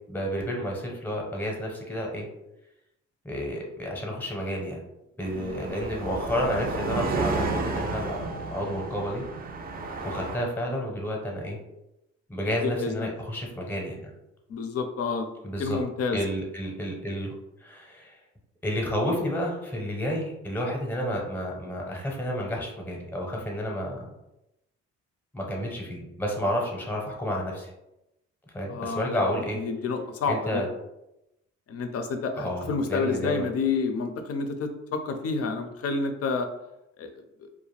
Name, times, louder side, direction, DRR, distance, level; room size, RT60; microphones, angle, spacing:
voice 1, 0.1-2.3 3.2-4.8 5.2-9.2 10.0-11.6 12.3-14.1 15.4-15.8 16.1-17.3 17.6-18.2 18.6-24.1 25.3-27.7 28.5-29.6 30.3-30.7 32.4-33.5, equal, 5° left, -1 dB, 0.7 m, -30 dB
sound 1, 5.2-10.4, right 3 dB, 30° right, 0.4 m, -31 dB
voice 2, 12.6-13.1 14.5-15.3 15.6-16.2 28.7-29.2 29.5-30.6 31.7-36.5 37.0-37.1 37.4-37.5, left 4 dB, 55° left, 7 dB, 0.5 m, -29 dB
2.4 x 2.1 x 3.2 m, 0.89 s
cardioid pair, 90°, 30 cm